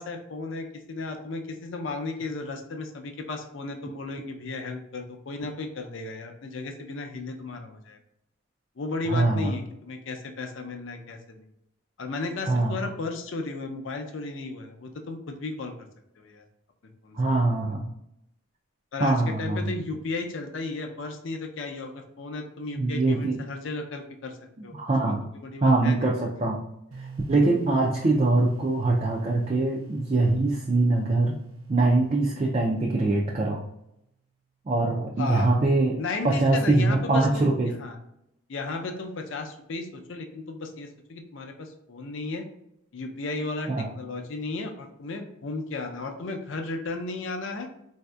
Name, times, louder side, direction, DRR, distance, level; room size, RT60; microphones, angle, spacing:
voice 1, 0.0-8.0 8.8-11.5 12.0-15.7 16.2-16.4 17.0-17.2 18.9-24.4 24.6-24.8 25.4-26.1 35.2-35.5 36.0-38.0 38.5-42.4 42.9-43.7 43.9-47.7, left 3 dB, 60° left, 4 dB, 0.5 m, -34 dB
voice 2, 9.1-9.5 12.5-12.8 17.1-17.8 19.0-19.7 22.8-23.4 24.7-25.2 25.6-26.6 27.0-31.4 31.7-33.6 34.7-37.7 43.7-43.9, right 2 dB, 30° right, -2 dB, 0.4 m, -23 dB
sound 1, 26.9-33.7, right 6 dB, 85° right, 0.6 m, -45 dB
4.1 x 2.7 x 2.3 m, 0.81 s
head